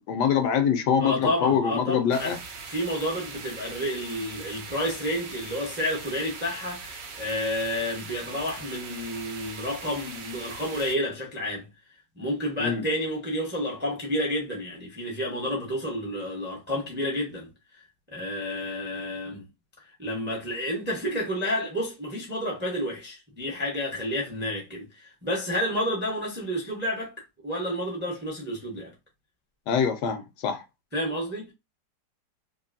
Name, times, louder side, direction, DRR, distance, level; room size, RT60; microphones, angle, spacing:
voice 1, 0.0-2.4 12.6-12.9 29.7-30.6, left 7 dB, 75° left, 1.1 m, -24 dB
voice 2, 1.0-2.4 2.7-11.7 12.2-17.5 18.1-19.5 20.0-27.1 27.4-28.9 30.9-31.5, equal, 15° right, 0.4 m, -30 dB
sound 1, 2.1-11.0, right 4 dB, 65° right, 0.8 m, -41 dB
2.9 x 2.6 x 2.5 m
omnidirectional pair, 1.9 m